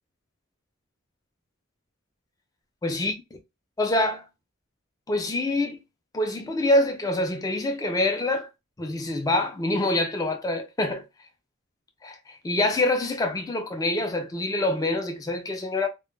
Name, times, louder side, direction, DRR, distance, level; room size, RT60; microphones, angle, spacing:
voice 1, 2.8-3.1 3.8-4.2 5.1-5.8 6.1-8.5 8.8-11.0 12.0-15.9, left 2 dB, 15° left, 0.3 m, -25 dB
2.1 x 2.1 x 3.1 m
head